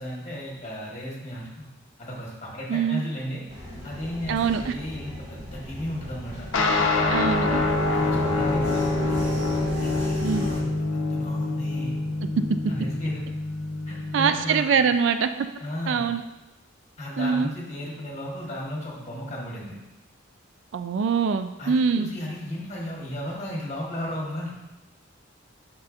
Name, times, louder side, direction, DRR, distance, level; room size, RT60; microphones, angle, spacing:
voice 1, 0.0-1.7 2.0-3.4 3.8-6.5 8.0-9.3 9.7-12.0 12.7-13.2 13.9-14.6 15.6-16.1 17.0-19.8 21.6-24.5, equal, 35° left, -4 dB, 1.5 m, -34 dB
voice 2, 2.7-3.0 4.3-4.7 7.1-7.6 10.2-10.4 14.1-15.5 15.9-16.2 17.2-17.5 20.7-22.1, right 6 dB, 65° right, 9 dB, 0.3 m, -23 dB
sound 1, 3.5-10.6, left 1 dB, 30° right, 1.8 m, -34 dB
sound 2, 6.5-14.3, left 2 dB, 75° left, 0.7 m, -26 dB
7.9 x 5.5 x 2.6 m, 1.0 s
head